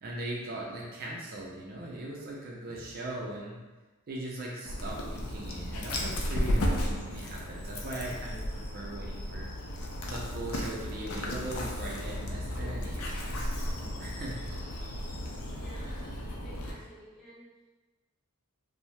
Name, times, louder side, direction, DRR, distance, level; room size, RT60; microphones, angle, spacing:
voice 1, 0.0-3.6 4.1-9.5 10.0-14.3 14.6-14.7, right 1 dB, 45° right, -3 dB, 0.4 m, -40 dB
Dog, 4.6-16.7, equal, 75° left, 0.5 m, -34 dB
voice 2, 15.5-17.5, right 1 dB, ahead, -10 dB, 0.7 m, -52 dB
2.7 x 2.0 x 3.1 m, 1.2 s
head